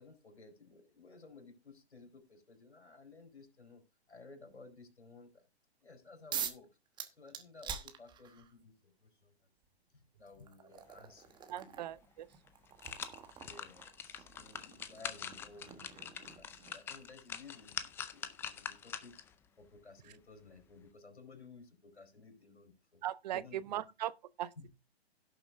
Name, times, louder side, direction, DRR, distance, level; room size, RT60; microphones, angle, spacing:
voice 1, 0.0-3.8 4.1-5.5 5.8-6.7 7.1-9.3 9.9-11.8 13.4-19.2 19.6-23.0 23.3-23.9 24.6-24.7, left 4 dB, 85° left, 4.7 m, -56 dB
sound 1, 6.3-6.7 7.0-8.5 9.6-9.7 10.3-16.9, right 8 dB, 15° right, 1.2 m, -46 dB
voice 2, 11.5-12.3 23.0-24.5, right 12 dB, 40° right, 0.7 m, -39 dB
sound 2, 11.9-12.0 12.5-19.3 19.8-19.9, left 8 dB, 5° left, 0.5 m, -44 dB
17.0 x 6.9 x 2.6 m
figure-of-eight pair, 130°, 33 cm